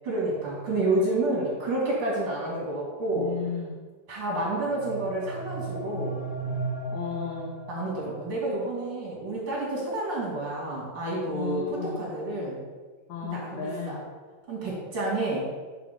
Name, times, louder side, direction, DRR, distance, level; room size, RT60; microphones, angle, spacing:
voice 1, 0.0-3.3 4.1-6.2 7.7-12.6 13.3-14.0 14.5-15.5, right 2 dB, 90° right, -5 dB, 3.1 m, -29 dB
voice 2, 3.1-3.8 6.9-7.5 11.3-12.0 13.1-14.0, left 6 dB, 70° left, -1 dB, 1.4 m, -33 dB
sound 1, 4.4-8.4, right 3 dB, 90° left, 1.7 m, -35 dB
9.6 x 3.7 x 5.1 m, 1.4 s
omnidirectional pair, 2.0 m